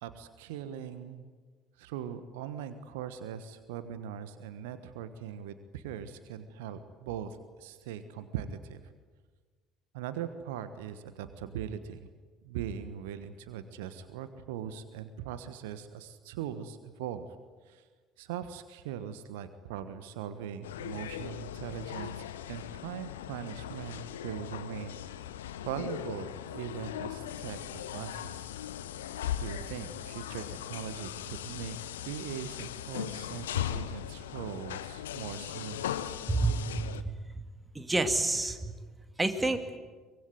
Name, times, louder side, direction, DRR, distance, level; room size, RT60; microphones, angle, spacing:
voice 1, 0.0-1.3 1.8-8.9 9.9-12.0 12.4-17.3 17.6-17.9 18.2-25.4 25.6-28.5 29.4-35.9, right 9 dB, 65° right, 11 dB, 1.3 m, -40 dB
sound 1, 20.6-37.0, left 11 dB, 75° left, 0.9 m, -39 dB
voice 2, 36.3-37.1 37.7-38.7 39.2-39.6, right 2 dB, 15° right, 7 dB, 2.5 m, -29 dB
24.0 x 22.0 x 9.4 m, 1.4 s
figure-of-eight pair, 55°, 0 cm